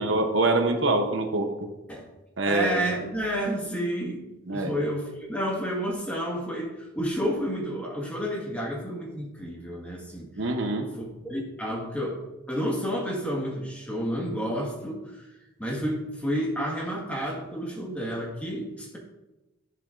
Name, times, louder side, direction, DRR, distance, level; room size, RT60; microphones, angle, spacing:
voice 1, 0.0-1.5 2.4-2.8 4.5-4.7 10.4-10.9, right 2 dB, 70° right, 5 dB, 0.9 m, -24 dB
voice 2, 2.4-4.2 4.5-10.3 10.9-12.2 12.5-15.3 15.6-19.0, equal, 5° left, -3 dB, 1.7 m, -30 dB
11.5 x 7.5 x 2.6 m, 1.0 s
head